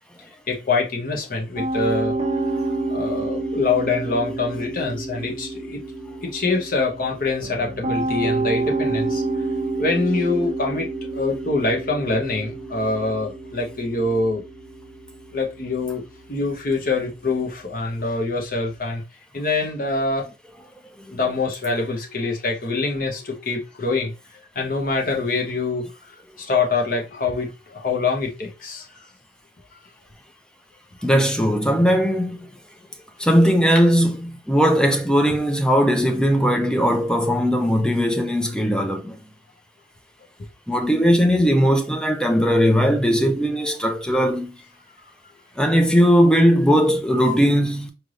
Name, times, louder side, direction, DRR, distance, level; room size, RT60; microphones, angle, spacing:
voice 1, 0.5-2.2 2.9-5.8 6.2-9.2 9.8-14.4 15.3-16.0 16.3-19.0 19.3-20.3 21.1-24.1 24.5-25.9 26.4-28.9, left 3 dB, 50° left, 1.0 m, -24 dB
Piano, 1.6-18.7, right 2 dB, 35° right, 1.0 m, -29 dB
voice 2, 31.0-32.5 33.2-39.2 40.7-44.6 45.6-47.9, equal, 5° left, 0.5 m, -19 dB
4.4 x 3.3 x 2.5 m
head